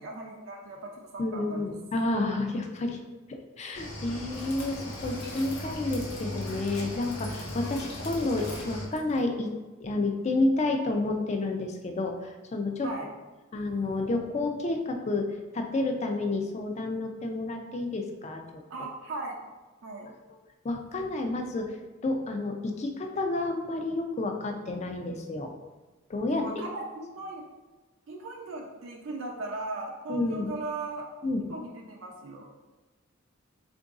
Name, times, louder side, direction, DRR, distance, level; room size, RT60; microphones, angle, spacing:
voice 1, 0.0-1.7 12.8-13.1 18.7-19.4 19.8-20.1 26.3-27.5 28.1-31.1 31.5-32.5, right 2 dB, 65° right, 0 dB, 0.4 m, -38 dB
voice 2, 1.2-3.0 3.3-9.5 9.8-12.9 13.5-15.3 15.5-18.6 20.6-21.8 22.0-25.5 26.1-26.4 30.1-30.5 31.2-31.4, left 2 dB, 30° left, 4 dB, 0.3 m, -30 dB
Cricket / Waves surf, 3.7-8.8, equal, 80° left, 1.0 m, -37 dB
sound 1, 4.3-9.2, left 3 dB, 50° left, 0.8 m, -48 dB
3.8 x 2.6 x 3.5 m, 1.2 s
head